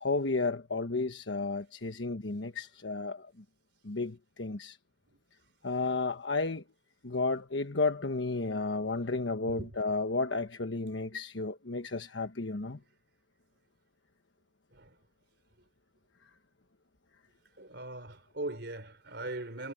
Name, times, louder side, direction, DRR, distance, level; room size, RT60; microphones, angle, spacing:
voice 1, 0.0-3.3 3.8-4.8 5.6-6.6 7.0-12.8, left 3 dB, 80° left, 1.3 m, -32 dB
voice 2, 9.5-9.8 14.7-15.0 17.6-19.7, right 2 dB, 65° right, 3.7 m, -40 dB
head